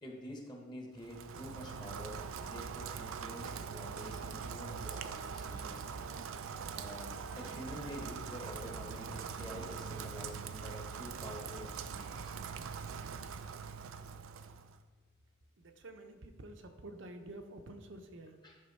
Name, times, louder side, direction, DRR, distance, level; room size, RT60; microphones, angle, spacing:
voice 1, 0.0-5.9 6.7-12.3 18.4-18.6, equal, 20° left, 0 dB, 1.1 m, -48 dB
Rain, 1.0-14.8, right 6 dB, 85° right, 0.4 m, -43 dB
voice 2, 15.6-18.4, right 1 dB, 65° right, 6 dB, 0.8 m, -49 dB
11.0 x 3.8 x 5.4 m, 1.4 s
head